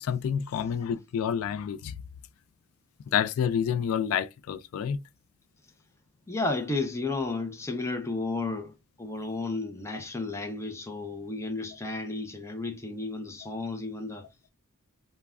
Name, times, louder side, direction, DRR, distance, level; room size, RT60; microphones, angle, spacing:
voice 1, 0.0-1.9 3.1-5.0, left 8 dB, 85° left, 0.3 m, -28 dB
voice 2, 6.3-14.2, left 3 dB, 15° left, 0.5 m, -33 dB
2.3 x 2.1 x 3.3 m
head